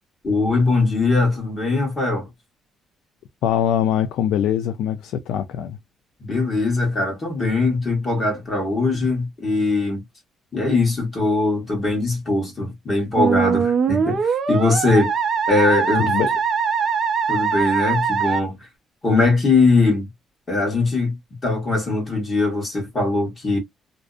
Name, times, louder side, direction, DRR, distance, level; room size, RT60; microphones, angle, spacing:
voice 1, 0.2-2.3 6.2-10.0 10.5-15.1 15.5-16.1 17.3-18.6 19.0-20.1 20.5-23.6, left 3 dB, 25° left, 1.2 m, -21 dB
voice 2, 3.4-5.8 16.1-16.3, left 9 dB, 90° left, 0.3 m, -22 dB
Musical instrument, 13.2-18.4, right 6 dB, 40° right, 0.5 m, -21 dB
2.5 x 2.0 x 2.3 m
cardioid pair, 145°, 0 cm